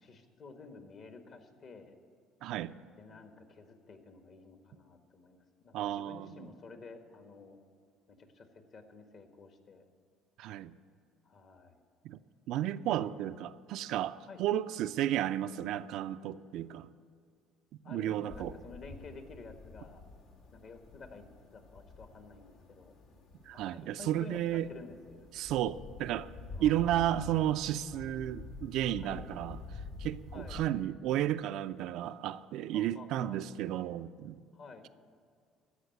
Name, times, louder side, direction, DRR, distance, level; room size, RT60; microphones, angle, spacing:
voice 1, 0.0-2.0 3.0-7.6 8.1-9.8 11.2-11.7 14.3-14.4 17.8-20.0 20.5-22.9 23.5-25.3 26.6-27.4 29.0-29.3 30.3-30.6 32.7-33.4 34.5-34.9, left 4 dB, 50° left, 1.5 m, -51 dB
voice 2, 2.4-2.8 5.7-6.5 10.4-10.8 12.0-12.2 12.5-16.9 17.9-18.6 23.5-24.7 25.3-26.3 26.6-29.6 30.0-34.4, right 12 dB, 70° right, 0.4 m, -33 dB
sound 1, 18.3-30.7, left 3 dB, 80° left, 1.8 m, -48 dB
15.0 x 5.7 x 9.3 m
supercardioid pair, 95°, 0 cm